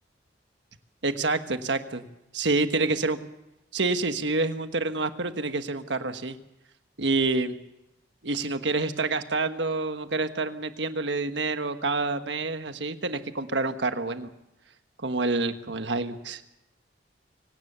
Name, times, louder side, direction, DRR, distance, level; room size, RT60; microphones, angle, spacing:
voice 1, 1.0-2.0 2.3-3.2 3.7-6.4 7.0-7.6 8.2-14.3 15.0-16.4, right 3 dB, 75° right, 8 dB, 1.4 m, -27 dB
24.5 x 17.5 x 6.9 m, 0.90 s
head